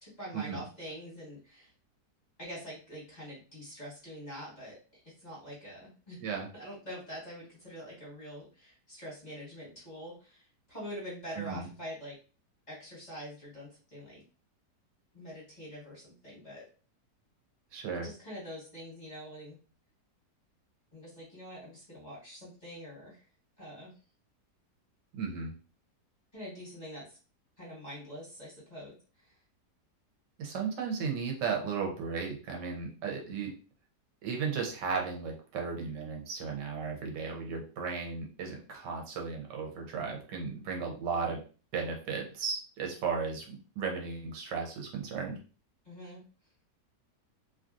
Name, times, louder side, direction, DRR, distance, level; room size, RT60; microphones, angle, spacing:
voice 1, 0.0-1.7 2.4-6.2 6.5-12.1 12.7-14.2 15.1-16.6 18.0-19.6 20.9-23.2 23.6-23.9 26.3-27.2 27.6-29.3 45.8-46.2, equal, 25° left, -6 dB, 1.5 m, -45 dB
voice 2, 11.4-11.7 17.7-18.1 25.2-25.5 30.4-33.5 34.2-41.4 41.7-45.4, right 5 dB, 80° right, 1 dB, 1.4 m, -35 dB
3.1 x 2.5 x 2.4 m, 0.36 s
omnidirectional pair, 1.8 m